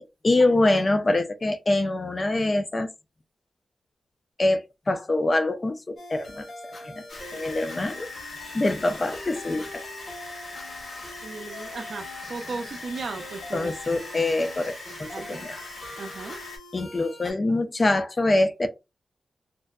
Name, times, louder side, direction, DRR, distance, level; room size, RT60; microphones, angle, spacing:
voice 1, 0.0-2.9 4.4-6.5 6.8-7.0 7.3-8.1 8.5-9.8 13.5-15.6 16.7-18.7, left 2 dB, 30° left, 0.3 m, -24 dB
sound 1, 6.0-17.3, left 2 dB, 70° left, 1.2 m, -44 dB
sound 2, 7.1-16.6, left 2 dB, 85° left, 1.1 m, -41 dB
voice 2, 11.2-13.7 15.1-15.5 16.0-16.4, right 4 dB, 60° right, 0.4 m, -36 dB
2.5 x 2.1 x 2.3 m
wide cardioid pair, 130°, 0 cm